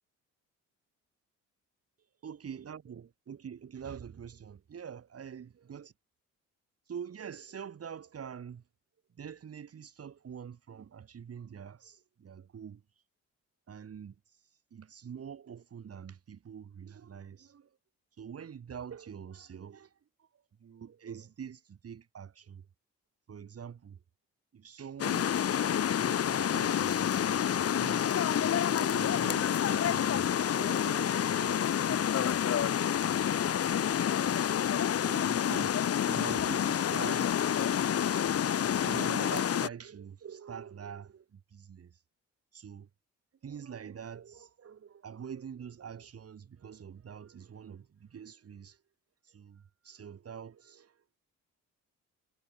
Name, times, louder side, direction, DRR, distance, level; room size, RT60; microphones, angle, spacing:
voice 1, 2.2-5.9 6.9-8.6 9.2-12.8 13.7-17.8 18.2-22.7 23.3-24.0 24.5-25.3 25.9-28.3 28.8-32.4 35.0-37.3 38.8-42.0 42.5-42.9 43.4-48.8 49.2-51.0, right 7 dB, 50° right, 7.6 m, -45 dB
sound 1, 25.0-39.7, left 9 dB, 50° left, 1.4 m, -28 dB
cardioid pair, 90°, 30 cm